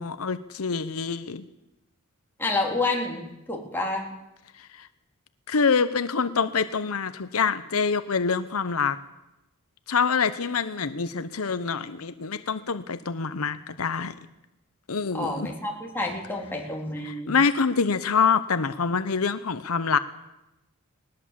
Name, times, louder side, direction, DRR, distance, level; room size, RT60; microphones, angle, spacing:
voice 1, 0.0-1.4 4.8-4.9 5.5-9.0 9.9-14.1 14.9-15.5 17.0-20.0, left 5 dB, 80° left, 12 dB, 0.8 m, -25 dB
voice 2, 2.4-4.1 15.1-17.4, left 2 dB, 10° left, -1 dB, 3.4 m, -29 dB
20.0 x 18.5 x 7.5 m, 0.95 s
head